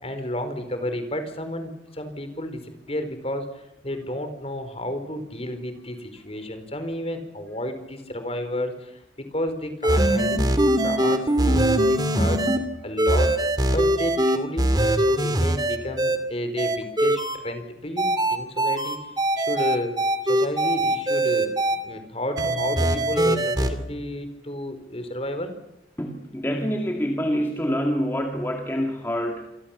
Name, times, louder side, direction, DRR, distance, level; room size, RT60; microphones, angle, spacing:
voice 1, 0.0-12.5 12.8-13.4 13.7-19.0 19.4-19.9 20.2-25.5, left 1 dB, 30° left, 9 dB, 4.5 m, -32 dB
sound 1, 9.8-12.6 13.0-16.2 16.6-17.4 18.0-21.8 22.4-23.7, right 1 dB, 20° right, 2.5 m, -21 dB
sound 2, 22.4-24.3, left 1 dB, 80° right, 3.5 m, -38 dB
voice 2, 26.0-29.6, equal, 10° left, 2 dB, 2.3 m, -26 dB
28.0 x 23.0 x 7.4 m, 0.86 s
head